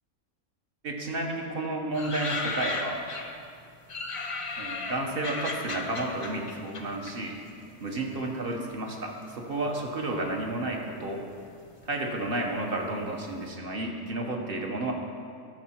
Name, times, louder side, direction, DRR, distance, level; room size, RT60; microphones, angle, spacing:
voice 1, 0.8-3.0 4.6-7.4 7.8-11.2 11.8-14.9, right 2 dB, 45° right, 1 dB, 1.2 m, -31 dB
sound 1, 1.9-3.5 3.9-7.8 8.0-8.9 9.5-10.1 10.4-10.5 10.7-13.0 13.3-13.4, left 3 dB, 35° left, 0.6 m, -36 dB
13.0 x 6.6 x 4.4 m, 2.3 s
omnidirectional pair, 1.5 m